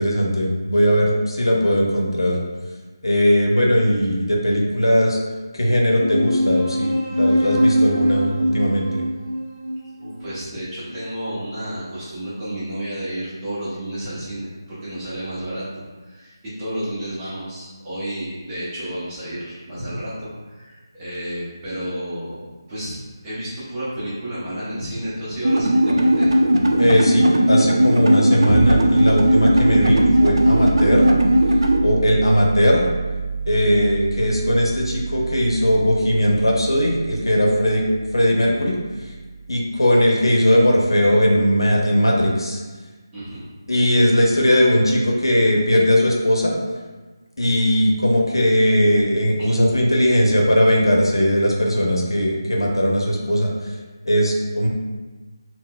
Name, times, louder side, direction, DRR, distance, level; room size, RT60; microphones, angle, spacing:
voice 1, 0.0-2.4 3.0-5.2 5.5-9.0 26.8-31.0 31.8-32.8 33.4-37.8 38.1-38.7 39.5-42.6 43.7-46.6 47.4-53.5 54.0-54.7, equal, 85° left, -1 dB, 0.6 m, -18 dB
sound 1, 6.0-10.9, equal, 15° left, 1.0 m, -22 dB
voice 2, 10.0-22.4 22.7-23.0 23.2-26.3 43.1-43.5 49.4-49.5, right 1 dB, 15° right, -11 dB, 0.8 m, -31 dB
sound 2, 25.4-31.8, right 1 dB, 75° right, 0.4 m, -17 dB
sound 3, 28.4-39.8, right 4 dB, 40° left, 0.5 m, -29 dB
3.8 x 2.1 x 2.2 m, 1.3 s
figure-of-eight pair, 165°, 2 cm